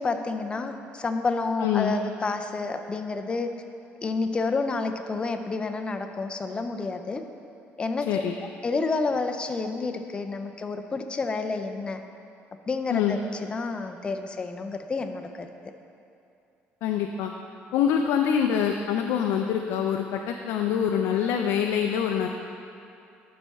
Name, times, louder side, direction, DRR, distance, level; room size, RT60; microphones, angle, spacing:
voice 1, 0.0-3.5 4.0-7.2 7.8-8.2 8.6-12.0 12.7-13.2 13.5-15.5, left 3 dB, 25° left, 7 dB, 0.4 m, -29 dB
voice 2, 1.6-1.9 8.1-8.3 12.9-13.2 16.8-17.3 17.7-22.3, left 8 dB, 85° left, 3 dB, 0.4 m, -25 dB
11.5 x 4.2 x 3.5 m, 2.6 s
cardioid pair, 135°, 4 cm